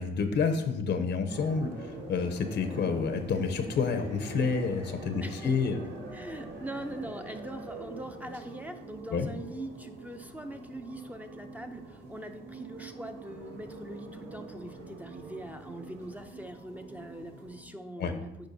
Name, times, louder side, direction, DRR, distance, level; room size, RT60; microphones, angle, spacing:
voice 1, 0.0-5.8 9.1-9.3 18.0-18.1, left 5 dB, 60° left, 7 dB, 0.7 m, -29 dB
sound 1, 1.3-17.6, right 2 dB, 60° right, 1.8 m, -45 dB
voice 2, 5.2-18.5, right 1 dB, 10° right, 6 dB, 0.5 m, -42 dB
8.8 x 4.8 x 2.7 m, 0.92 s
cardioid pair, 90°, 20 cm